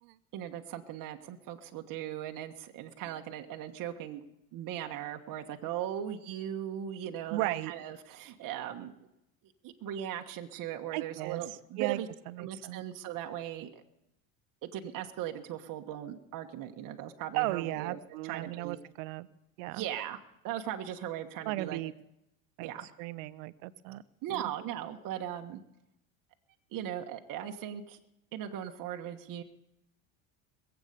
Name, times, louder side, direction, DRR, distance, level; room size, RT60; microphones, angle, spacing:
voice 1, 0.3-4.2 4.5-9.1 9.6-12.1 12.4-13.8 14.6-18.8 19.7-20.2 20.4-21.8 22.6-22.9 24.2-25.6 26.7-28.0 28.3-29.4, right 11 dB, 50° right, 4 dB, 1.5 m, -38 dB
voice 2, 7.3-7.7 10.9-11.4 11.8-12.0 12.3-12.8 17.3-19.3 19.6-19.9 21.4-21.9 22.6-22.7 23.0-24.0 24.3-24.5, right 18 dB, 75° right, 17 dB, 0.9 m, -36 dB
21.5 x 8.3 x 6.8 m, 0.86 s
supercardioid pair, 90°, 40 cm